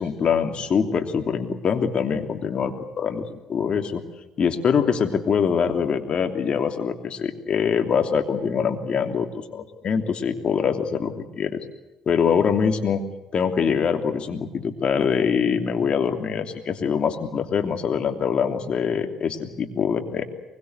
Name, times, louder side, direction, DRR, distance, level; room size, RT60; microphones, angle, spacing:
voice 1, 0.0-4.0 4.4-11.6 12.1-13.0 13.3-20.2, left 6 dB, 50° left, 6 dB, 3.1 m, -24 dB
23.5 x 22.5 x 8.1 m, 0.96 s
hypercardioid pair, 55°, 2 cm